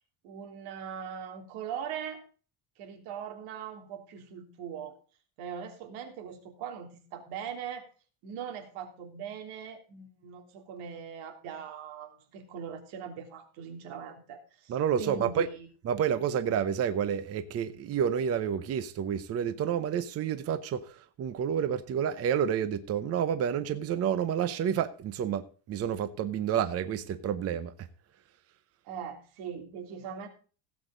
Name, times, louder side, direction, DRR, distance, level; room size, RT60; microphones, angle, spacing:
voice 1, 0.2-2.2 2.8-4.9 5.4-7.9 8.2-15.7 28.8-30.3, right 7 dB, 85° right, 3.4 m, -41 dB
voice 2, 14.7-15.5 15.8-27.7, right 8 dB, 30° right, 0.8 m, -29 dB
16.5 x 8.3 x 3.9 m
cardioid pair, 180°, 48 cm